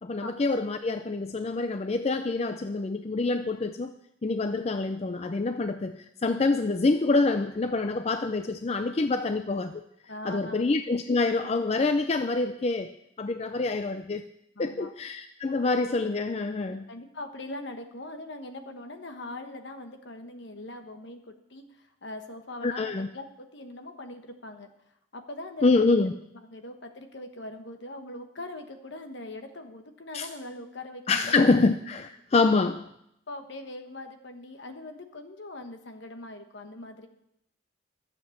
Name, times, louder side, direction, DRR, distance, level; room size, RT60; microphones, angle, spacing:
voice 1, 0.0-3.9 4.2-9.8 10.2-12.9 13.2-14.2 14.6-16.9 22.6-23.1 25.6-26.1 30.1-30.3 31.1-32.9, left 3 dB, 30° left, 9 dB, 0.4 m, -26 dB
voice 2, 10.1-10.6 14.5-14.9 16.7-24.7 25.1-25.9 26.4-31.4 33.3-37.1, left 2 dB, 60° left, 7 dB, 1.2 m, -41 dB
12.0 x 7.6 x 7.2 m, 0.80 s
head